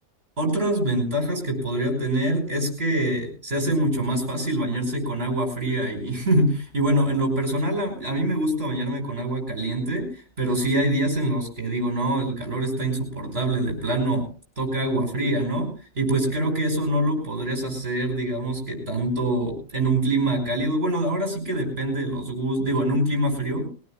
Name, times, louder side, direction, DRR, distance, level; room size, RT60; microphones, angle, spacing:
voice 1, 0.4-10.1 10.4-14.3 14.6-23.7, right 1 dB, 45° right, 2 dB, 5.7 m, -25 dB
21.5 x 17.5 x 2.2 m, 0.39 s
omnidirectional pair, 1.4 m